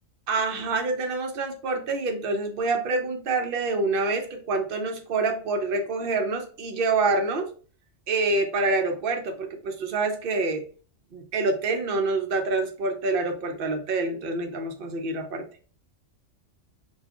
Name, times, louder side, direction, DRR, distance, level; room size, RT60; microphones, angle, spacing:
voice 1, 0.3-7.5 8.1-10.6 11.1-15.5, right 3 dB, 55° right, 5 dB, 0.7 m, -26 dB
3.1 x 2.4 x 2.4 m, 0.40 s
omnidirectional pair, 1.3 m